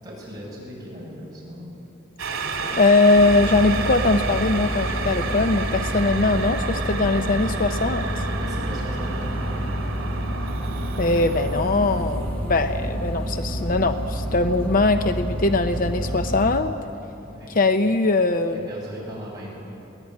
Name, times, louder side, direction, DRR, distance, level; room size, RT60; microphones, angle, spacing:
voice 1, 0.0-1.7 2.4-2.8 8.4-9.6 17.2-17.5 18.5-19.5, equal, 20° right, -6 dB, 8.0 m, -38 dB
sound 1, 2.2-14.3 14.6-14.7, right 4 dB, 75° right, 2.9 m, -32 dB
voice 2, 2.8-8.2 11.0-16.7 17.5-18.7, left 3 dB, 40° left, 8 dB, 0.6 m, -21 dB
sound 2, 3.2-16.6, equal, 5° left, 1.7 m, -29 dB
22.5 x 17.5 x 9.6 m, 2.9 s
head